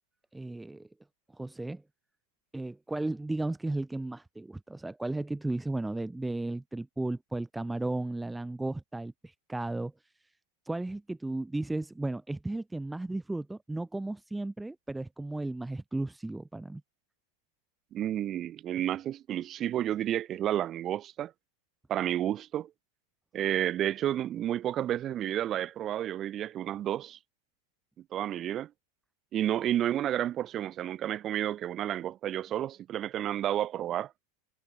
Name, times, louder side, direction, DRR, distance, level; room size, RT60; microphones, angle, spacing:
voice 1, 0.3-0.9 1.3-1.8 2.5-9.9 10.6-16.8, right 2 dB, 5° right, 1.3 m, -34 dB
voice 2, 17.9-21.3 21.9-22.7 23.3-27.2 28.1-28.7 29.3-34.1, right 11 dB, 30° right, 3.4 m, -31 dB
figure-of-eight pair, 90°, 0 cm